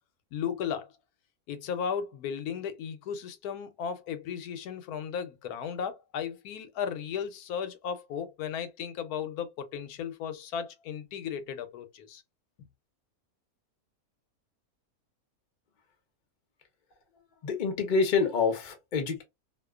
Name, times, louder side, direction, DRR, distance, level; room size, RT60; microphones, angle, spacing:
voice 1, 0.3-0.9 1.5-12.2, left 7 dB, 90° left, 1.1 m, -35 dB
voice 2, 17.4-19.2, left 5 dB, 50° left, 0.6 m, -27 dB
2.6 x 2.1 x 2.3 m
omnidirectional pair, 1.5 m